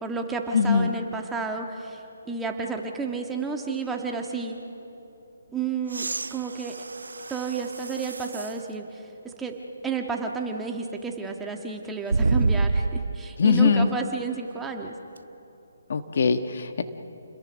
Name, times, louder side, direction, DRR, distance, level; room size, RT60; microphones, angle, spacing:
voice 1, 0.0-4.6 5.5-6.7 7.3-9.6 9.8-14.9, right 4 dB, 10° right, 2 dB, 1.6 m, -31 dB
voice 2, 0.5-0.9 13.4-13.9 15.9-16.8, left 5 dB, 55° left, 9 dB, 1.3 m, -21 dB
sound 1, 5.9-8.6 9.3-9.4 12.1-13.3 15.2-15.3, right 3 dB, 85° right, 0.6 m, -27 dB
29.5 x 21.5 x 6.4 m, 3.0 s
hypercardioid pair, 155°, 0 cm